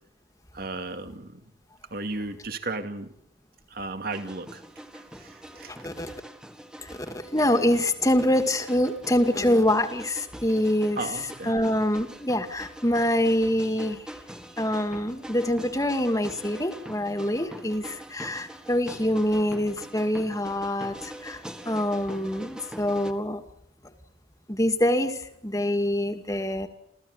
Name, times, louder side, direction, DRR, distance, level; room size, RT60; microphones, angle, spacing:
voice 1, 0.5-1.4 1.9-3.1 3.7-4.6 4.9-5.7 11.0-11.5, right 3 dB, 50° right, 7 dB, 2.6 m, -35 dB
sound 1, 4.1-23.1, right 1 dB, 5° right, 1.8 m, -44 dB
voice 2, 5.6-6.1 6.8-14.1 14.6-23.4 24.5-26.7, left 1 dB, 15° left, 7 dB, 2.2 m, -25 dB
29.0 x 15.5 x 9.8 m, 0.71 s
head